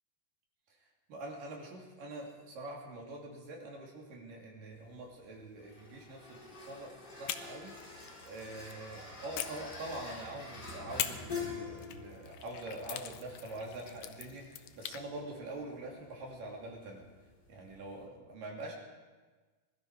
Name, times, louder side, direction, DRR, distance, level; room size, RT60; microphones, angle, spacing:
voice 1, 1.1-17.0 17.5-18.8, right 2 dB, 90° right, -1 dB, 4.3 m, -45 dB
sound 1, 4.7-18.1, left 4 dB, 30° left, 4.5 m, -48 dB
sound 2, 7.2-8.8 9.3-10.4 11.0-15.0, left 11 dB, 80° left, 2.3 m, -43 dB
21.5 x 13.0 x 4.8 m, 1.3 s
omnidirectional pair, 3.7 m